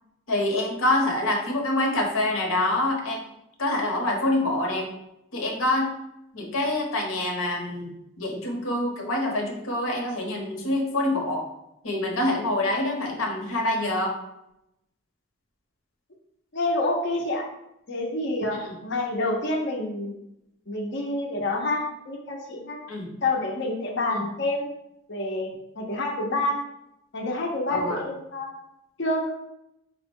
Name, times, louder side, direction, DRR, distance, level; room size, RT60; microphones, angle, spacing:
voice 1, 0.3-3.2 3.6-4.9 5.3-5.9 6.3-7.9 8.2-11.4 11.8-14.1 18.6-18.7 22.9-23.1 27.7-28.0, left 1 dB, 85° left, 0 dB, 1.0 m, -26 dB
voice 2, 16.5-17.4 17.9-20.2 20.7-22.8 23.2-24.7 25.1-25.5 25.8-26.6 27.1-28.5 29.0-29.3, left 2 dB, 55° left, 0 dB, 0.7 m, -27 dB
4.8 x 2.2 x 4.5 m, 0.83 s
head